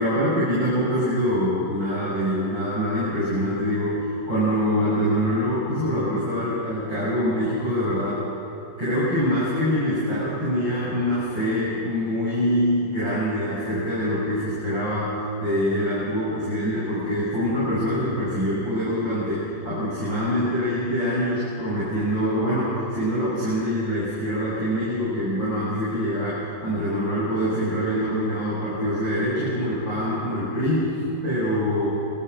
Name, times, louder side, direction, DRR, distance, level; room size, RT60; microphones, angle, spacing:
voice 1, 0.0-8.2 8.8-31.9, equal, 80° right, -9 dB, 8.1 m, -24 dB
26.5 x 25.5 x 6.4 m, 2.8 s
omnidirectional pair, 2.0 m